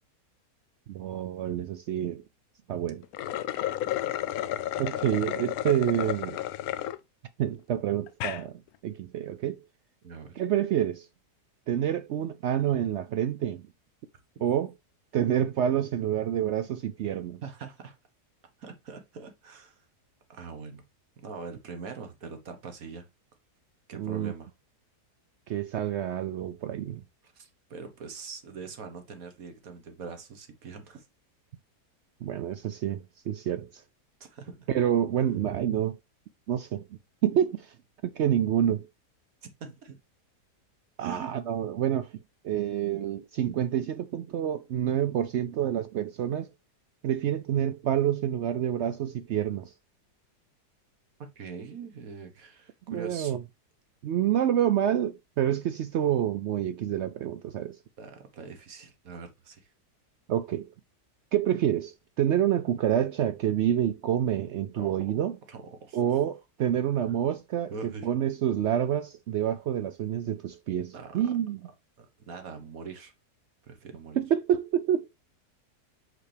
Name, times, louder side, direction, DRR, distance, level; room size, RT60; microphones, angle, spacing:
voice 1, 0.9-2.2 2.7-3.0 4.8-6.4 7.4-9.6 10.4-11.1 11.7-13.6 14.4-14.7 15.1-17.4 23.9-24.3 25.5-27.0 32.2-33.8 34.7-36.0 36.5-36.9 37.2-37.7 38.0-38.9 41.0-46.5 47.0-49.7 52.9-53.4 54.0-57.8 60.3-60.7 61.3-65.4 65.9-71.6 74.2-75.1, right 10 dB, 90° right, 0.6 m, -28 dB
sound 1, 3.0-7.0 7.5-7.6 8.1-8.4, left 12 dB, 70° left, 1.0 m, -32 dB
voice 2, 10.0-10.4 17.1-18.0 18.6-19.8 20.3-20.8 21.2-23.1 23.9-24.5 27.2-31.0 34.2-34.7 39.6-40.0 41.0-41.3 51.4-53.3 58.0-59.7 64.8-65.1 65.5-66.1 67.7-68.1 70.9-71.2 72.0-73.1 73.6-74.2, right 5 dB, 60° right, 1.7 m, -43 dB
6.1 x 5.0 x 3.3 m
omnidirectional pair, 1.7 m